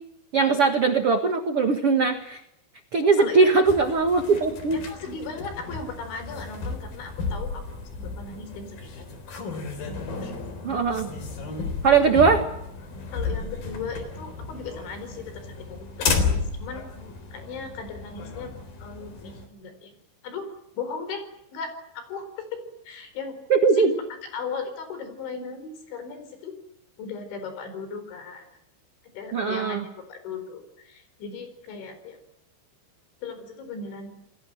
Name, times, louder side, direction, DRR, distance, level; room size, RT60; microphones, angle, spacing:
voice 1, 0.3-2.4 2.9-4.8 10.6-11.1 11.8-12.4 23.5-23.9 29.3-29.8, right 4 dB, 70° right, 6 dB, 1.3 m, -20 dB
voice 2, 3.2-3.5 4.7-7.6 8.0-9.1 10.2-10.3 12.0-12.3 13.1-15.8 16.1-16.8 17.3-18.5 18.8-20.0 20.2-20.4 20.7-21.2 21.5-22.4 22.8-23.4 23.7-23.9 24.3-26.5 27.0-28.5 29.1-32.2 33.2-34.1, left 5 dB, 75° left, 8 dB, 6.7 m, -37 dB
sound 1, 3.6-19.5, left 4 dB, 50° left, 5.2 m, -33 dB
29.5 x 21.5 x 7.9 m, 0.78 s
omnidirectional pair, 5.4 m